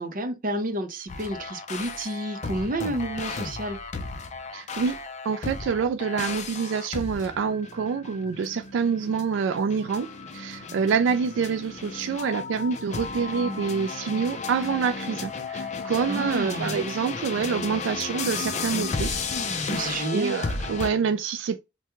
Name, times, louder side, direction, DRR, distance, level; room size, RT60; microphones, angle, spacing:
voice 1, 0.0-3.8 16.1-16.8 19.7-20.3, right 1 dB, 45° right, 0.6 m, -30 dB
sound 1, 1.1-20.9, left 4 dB, 40° left, 0.5 m, -34 dB
voice 2, 4.5-5.0 5.2-19.2 19.5-19.9 20.1-21.6, right 6 dB, 85° right, 0.3 m, -27 dB
3.3 x 2.2 x 2.9 m
head